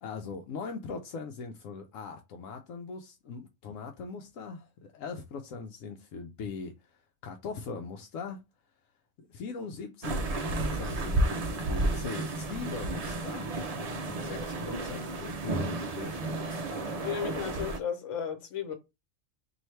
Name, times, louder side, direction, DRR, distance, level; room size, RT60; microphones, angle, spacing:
voice 1, 0.0-6.7 7.2-8.4 9.2-11.3 11.5-16.9, left 5 dB, 80° left, 1.0 m, -41 dB
sound 1, 10.0-17.8, right 2 dB, 70° right, 0.3 m, -32 dB
voice 2, 17.0-18.7, left 8 dB, 65° left, 1.2 m, -34 dB
3.1 x 2.7 x 4.3 m
omnidirectional pair, 1.4 m